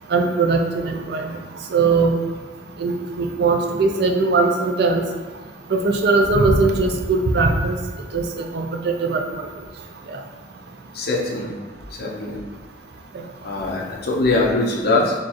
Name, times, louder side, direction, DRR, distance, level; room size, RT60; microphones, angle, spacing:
voice 1, 0.1-1.4 1.7-2.1 2.8-5.0 5.7-7.8 8.1-9.5 10.1-10.2 13.1-13.2, right 3 dB, 60° right, 4 dB, 0.5 m, -20 dB
voice 2, 10.9-11.5 12.0-12.4 13.4-15.1, left 2 dB, 60° left, -2 dB, 0.8 m, -22 dB
4.3 x 3.1 x 3.0 m, 1.5 s
head